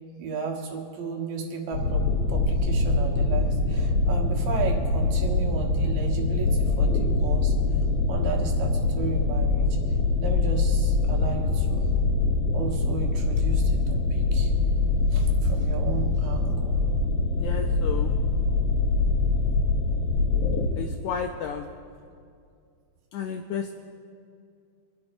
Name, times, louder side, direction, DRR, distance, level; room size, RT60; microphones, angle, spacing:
voice 1, 0.2-7.5 8.1-9.7 10.2-11.9 12.5-14.5 15.1-16.8, right 6 dB, 75° right, 1 dB, 3.1 m, -34 dB
sound 1, 1.7-20.7, left 3 dB, 65° left, 2.4 m, -24 dB
voice 2, 17.4-18.1 20.8-21.7 23.1-23.7, left 7 dB, 90° left, 3 dB, 1.7 m, -32 dB
26.0 x 11.0 x 2.6 m, 2.3 s
omnidirectional pair, 4.1 m